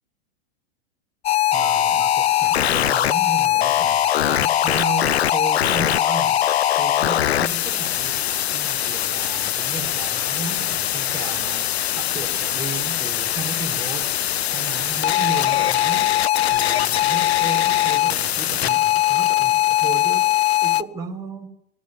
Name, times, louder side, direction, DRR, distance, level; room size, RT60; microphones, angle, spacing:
sound 1, 1.2-20.8, left 12 dB, 85° left, 0.7 m, -21 dB
voice 1, 1.5-4.0 4.3-6.4 6.8-8.2 8.5-11.7 11.9-14.1 14.5-16.1 16.5-20.3 20.6-21.5, right 5 dB, 10° right, -1 dB, 4.3 m, -34 dB
19.0 x 15.0 x 9.6 m, 0.77 s
hypercardioid pair, 115°, 31 cm